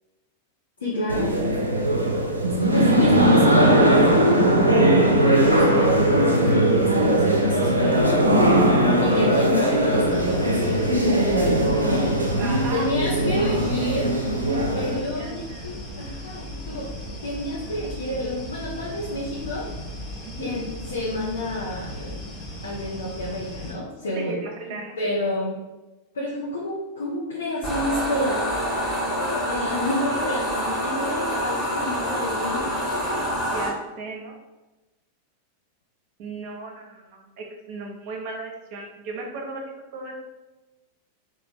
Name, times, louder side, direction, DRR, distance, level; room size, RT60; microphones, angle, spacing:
voice 1, 0.8-1.4 2.6-4.4 5.2-8.4 9.0-10.8 11.4-12.1 12.7-14.2 14.7-16.9 17.2-19.7 20.4-22.3 22.6-24.4 24.7-25.6 26.1-28.5 29.5-32.7, left 1 dB, 65° left, -3 dB, 0.5 m, -29 dB
sound 1, 1.1-15.0, right 1 dB, 85° right, 0.4 m, -19 dB
sound 2, 10.1-23.7, equal, 30° left, 0.8 m, -37 dB
voice 2, 12.3-12.9 13.6-13.9 14.2-14.9 15.2-15.6 20.2-20.5 24.1-24.9 33.5-34.3 36.2-40.1, right 3 dB, 45° right, 0 dB, 0.7 m, -36 dB
sound 3, 27.6-33.7, equal, ahead, 1.1 m, -26 dB
2.8 x 2.1 x 3.4 m, 1.1 s
figure-of-eight pair, 90°, 0 cm